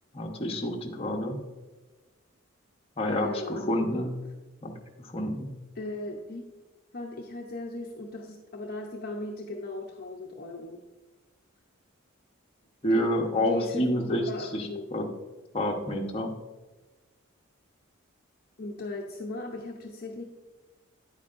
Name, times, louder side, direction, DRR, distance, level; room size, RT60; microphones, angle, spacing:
voice 1, 0.1-1.4 3.0-4.1 4.6-4.7 5.0-5.5 12.8-15.1 15.5-16.3, left 1 dB, 30° left, 1 dB, 1.0 m, -28 dB
voice 2, 3.1-4.1 5.8-6.4 6.9-10.8 12.9-13.0 13.3-13.8 14.3-14.9 18.6-20.2, left 2 dB, 45° left, 1 dB, 0.7 m, -38 dB
9.8 x 8.2 x 2.5 m, 1.2 s
head